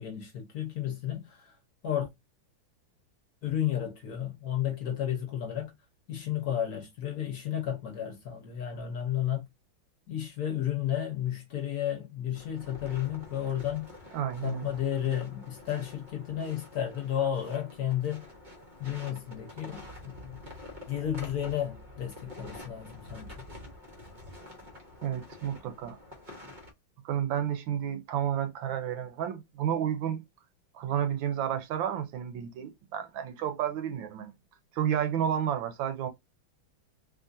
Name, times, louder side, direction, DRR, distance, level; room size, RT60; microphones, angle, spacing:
voice 1, 0.0-1.5 1.8-2.1 3.4-5.7 6.1-9.4 10.1-13.9 14.4-18.3 18.8-20.4 20.9-23.3, left 10 dB, 60° left, 1.1 m, -32 dB
sound 1, 12.3-26.7, left 1 dB, 50° right, 0.5 m, -48 dB
voice 2, 14.1-14.7 25.0-26.0 27.0-30.2 30.7-34.3 34.7-36.1, right 9 dB, 80° right, 1.3 m, -31 dB
3.6 x 2.4 x 2.5 m
omnidirectional pair, 2.2 m